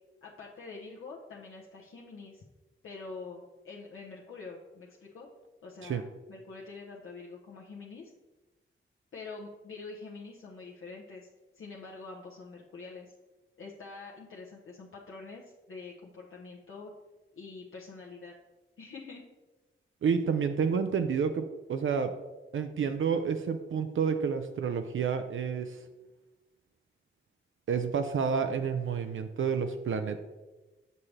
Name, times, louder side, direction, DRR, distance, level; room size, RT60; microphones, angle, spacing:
voice 1, 0.2-2.4 2.8-5.3 5.6-6.0 6.3-8.1 9.1-11.3 11.5-13.1 13.6-16.9 17.3-18.3 18.8-19.2, left 4 dB, 80° left, -4 dB, 1.0 m, -45 dB
voice 2, 20.0-21.4 21.7-22.2 22.5-25.8 27.7-30.2, right 6 dB, 70° right, 8 dB, 0.5 m, -29 dB
7.2 x 6.7 x 3.3 m, 1.2 s
wide cardioid pair, 105°, 21 cm